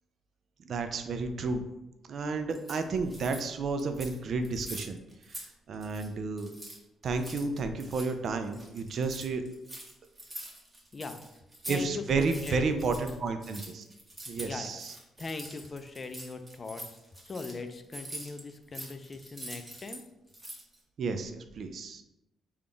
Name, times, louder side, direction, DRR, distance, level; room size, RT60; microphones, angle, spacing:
voice 1, 0.7-1.6 2.1-5.0 5.3-6.5 7.0-9.4 11.7-13.8 14.3-14.9 21.0-22.0, right 4 dB, 55° right, 7 dB, 0.4 m, -31 dB
sound 1, 2.5-3.5 3.8-4.2 4.4-5.5 5.7-6.1 6.4-11.8 12.1-20.0 20.3-20.8, right 1 dB, 20° right, 1.0 m, -45 dB
voice 2, 11.7-12.6 14.4-14.8 15.2-17.0 17.2-20.0, left 3 dB, 35° left, 8 dB, 0.4 m, -40 dB
3.5 x 2.3 x 3.8 m, 0.93 s
cardioid pair, 90°, 0 cm